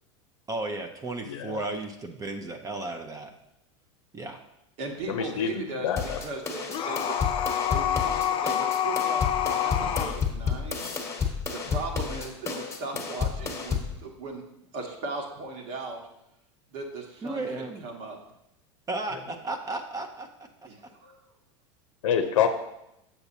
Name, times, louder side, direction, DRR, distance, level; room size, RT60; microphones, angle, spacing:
voice 1, 0.5-3.3 4.1-4.4 17.2-17.9 18.9-20.3, right 2 dB, 20° right, 5 dB, 0.6 m, -34 dB
voice 2, 1.3-1.7 5.1-6.2 22.0-22.5, left 8 dB, 80° left, 6 dB, 0.6 m, -27 dB
voice 3, 4.8-7.2 7.7-10.9 11.5-14.5 14.7-16.0 16.7-18.2 20.7-21.2, right 3 dB, 60° right, 1 dB, 1.6 m, -38 dB
sound 1, 6.0-14.0, left 6 dB, 20° left, 1.2 m, -31 dB
sound 2, 6.7-10.2, left 9 dB, 35° left, 0.7 m, -27 dB
7.0 x 6.8 x 2.8 m, 0.84 s
hypercardioid pair, 100°, 16 cm